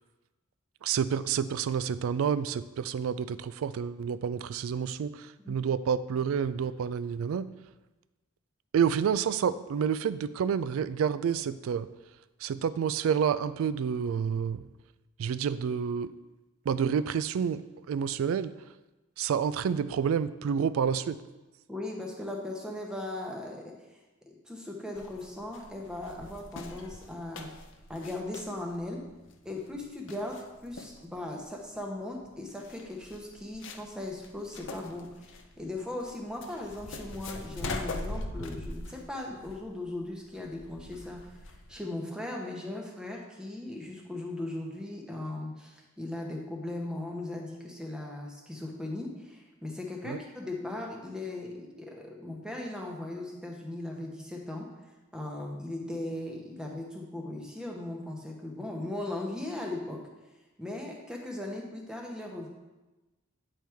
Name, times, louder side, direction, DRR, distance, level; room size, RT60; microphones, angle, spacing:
voice 1, 0.8-7.5 8.7-11.9 12.4-14.6 15.2-16.1 16.7-17.6 17.9-18.5 19.2-21.2 50.0-50.2, right 7 dB, 75° right, 15 dB, 0.3 m, -29 dB
voice 2, 21.7-23.8 24.3-27.6 27.9-29.1 29.4-41.4 41.7-54.7 55.1-60.1 60.6-62.5, left 1 dB, 5° right, 0 dB, 0.8 m, -38 dB
sound 1, 24.9-41.7, left 2 dB, 60° left, 0.6 m, -42 dB
9.0 x 4.5 x 3.5 m, 1.1 s
head